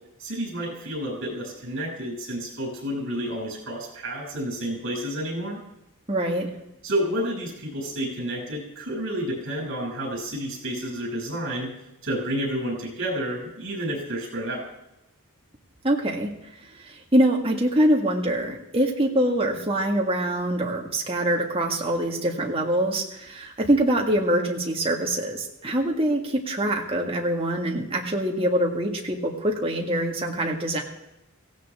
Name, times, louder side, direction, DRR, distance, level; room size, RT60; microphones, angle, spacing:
voice 1, 0.2-5.6 6.8-11.7 12.0-14.7, equal, 60° right, -1 dB, 7.3 m, -30 dB
voice 2, 6.1-6.5 15.8-16.3 16.8-30.8, right 1 dB, 25° right, 1 dB, 1.8 m, -24 dB
17.0 x 16.0 x 3.7 m, 0.89 s
head